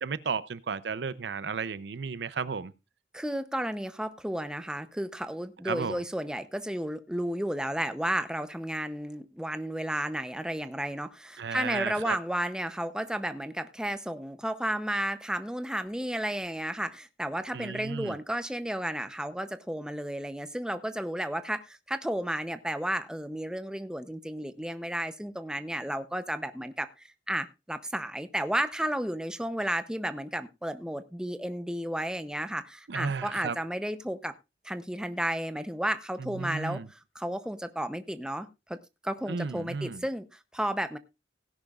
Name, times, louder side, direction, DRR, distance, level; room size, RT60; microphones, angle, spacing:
voice 1, 0.0-2.7 5.6-6.0 11.4-12.2 17.5-18.2 32.9-33.6 36.2-36.9 39.3-40.0, right 5 dB, 75° right, 16 dB, 0.6 m, -33 dB
voice 2, 3.1-26.9 27.3-34.3 34.6-38.8 39.0-41.0, right 1 dB, 5° right, 10 dB, 0.6 m, -33 dB
17.0 x 10.0 x 2.4 m, 0.25 s
head